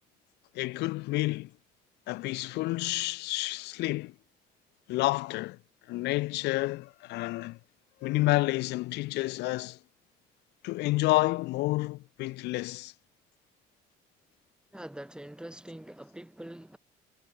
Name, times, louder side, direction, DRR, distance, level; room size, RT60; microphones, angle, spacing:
voice 1, 0.5-1.5 2.1-4.1 4.9-5.6 5.9-7.6 8.0-9.8 10.6-12.9, left 20 dB, 85° left, 1.4 m, -29 dB
voice 2, 14.7-16.8, right 1 dB, 5° right, 3.6 m, -44 dB
cardioid pair, 110°, 17 cm